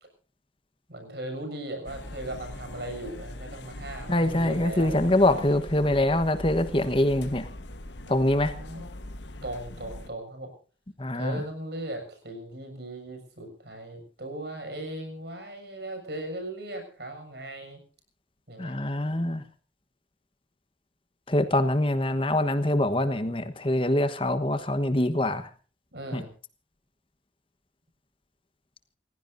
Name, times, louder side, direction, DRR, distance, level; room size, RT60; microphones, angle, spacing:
voice 1, 0.9-5.0 8.0-8.8 9.4-10.5 11.1-17.8 18.5-18.7 25.9-26.3, right 1 dB, 60° right, 6 dB, 6.8 m, -38 dB
sound 1, 1.9-10.1, left 1 dB, 70° left, 1.3 m, -41 dB
voice 2, 4.1-7.5 8.1-8.5 11.0-11.4 18.6-19.4 21.3-25.5 26.1-26.2, left 1 dB, 30° left, 11 dB, 1.2 m, -24 dB
29.0 x 16.0 x 2.7 m, 0.38 s
head